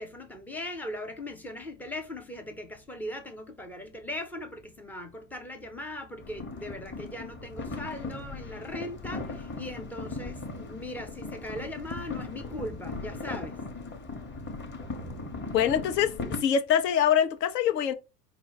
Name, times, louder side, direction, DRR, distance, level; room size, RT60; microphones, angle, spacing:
voice 1, 0.0-13.6, left 1 dB, 5° left, 0.3 m, -39 dB
sound 1, 6.2-16.4, left 3 dB, 20° left, 0.9 m, -38 dB
voice 2, 15.5-17.9, left 9 dB, 70° left, 0.8 m, -24 dB
4.8 x 2.0 x 4.6 m
hypercardioid pair, 90°, 50 cm